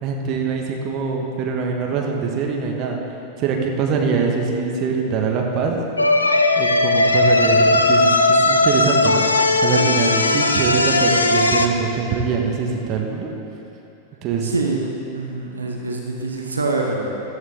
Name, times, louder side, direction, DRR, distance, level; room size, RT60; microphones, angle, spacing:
voice 1, 0.0-3.0 3.4-5.8 6.5-9.3 9.6-13.3 14.2-14.5, right 5 dB, 40° right, 1 dB, 1.5 m, -23 dB
sound 1, 6.0-11.7, left 2 dB, 80° left, 0.6 m, -17 dB
voice 2, 14.4-17.1, right 3 dB, 75° right, 0 dB, 1.2 m, -25 dB
14.0 x 12.5 x 3.8 m, 2.9 s
figure-of-eight pair, 90°, 0 cm